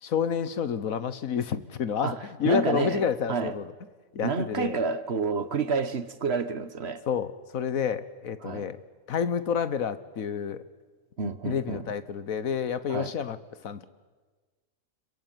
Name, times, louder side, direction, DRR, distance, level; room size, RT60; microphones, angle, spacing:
voice 1, 0.0-3.7 4.1-4.8 7.1-8.8 9.1-10.6 11.4-13.4 13.6-13.9, left 7 dB, 80° left, 14 dB, 1.6 m, -29 dB
voice 2, 2.0-3.6 4.2-7.0 8.4-8.7 11.2-11.9 12.9-13.1, right 5 dB, 50° right, 13 dB, 1.3 m, -29 dB
26.5 x 22.5 x 9.1 m, 1.4 s
omnidirectional pair, 1.4 m